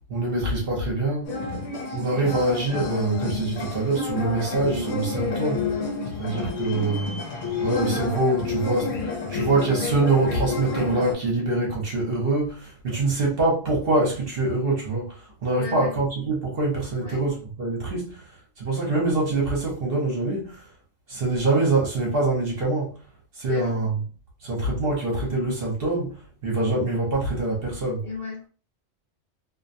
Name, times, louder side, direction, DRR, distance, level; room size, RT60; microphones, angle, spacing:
voice 1, 0.1-1.4 1.9-5.7 6.1-7.2 7.6-18.3 18.6-20.7 21.1-23.0 23.3-24.0 24.4-28.0, right 2 dB, 50° right, 1.0 m, -25 dB
sound 1, 1.2-11.1, left 3 dB, 80° left, 1.0 m, -29 dB
voice 2, 15.5-15.9 17.0-17.2 23.4-23.7 28.0-28.5, left 4 dB, 45° left, 1.0 m, -35 dB
2.4 x 2.2 x 2.5 m
omnidirectional pair, 1.3 m